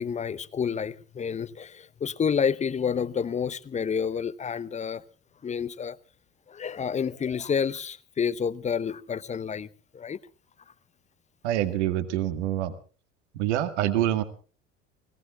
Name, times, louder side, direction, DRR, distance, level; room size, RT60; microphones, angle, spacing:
voice 1, 0.0-5.0 5.4-6.0 6.5-9.7 9.9-10.2, left 7 dB, 20° left, 0.7 m, -29 dB
voice 2, 11.4-12.7 13.3-14.2, right 12 dB, 65° right, 1.9 m, -26 dB
30.0 x 17.5 x 2.3 m
figure-of-eight pair, 70°, 37 cm